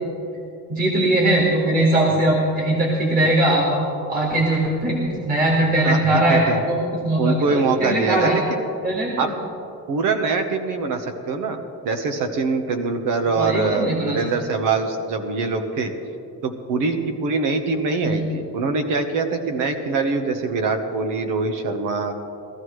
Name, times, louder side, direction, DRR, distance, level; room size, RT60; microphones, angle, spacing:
voice 1, 0.7-6.8 7.0-8.4 8.8-9.3 13.4-14.2 18.0-18.2, right 1 dB, 25° right, -3 dB, 1.9 m, -20 dB
voice 2, 5.8-6.6 7.2-8.6 9.2-9.3 9.9-15.9 16.4-22.1, right 4 dB, 90° right, 5 dB, 1.1 m, -23 dB
18.0 x 13.0 x 3.2 m, 2.7 s
cardioid pair, 135°, 31 cm